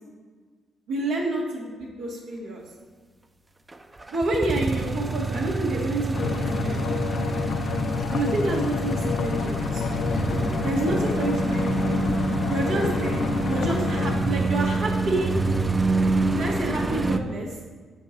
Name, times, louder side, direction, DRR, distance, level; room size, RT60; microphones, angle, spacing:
voice 1, 0.9-2.6 4.1-6.8 8.1-9.9 10.6-11.9 12.5-15.3 16.3-17.5, right 2 dB, 90° right, -4 dB, 1.7 m, -28 dB
sound 1, 3.7-17.2, right 2 dB, 20° right, 0.4 m, -27 dB
sound 2, 6.1-14.2, left 6 dB, 70° left, 0.4 m, -29 dB
7.2 x 4.4 x 4.4 m, 1.5 s
cardioid pair, 90°, 0 cm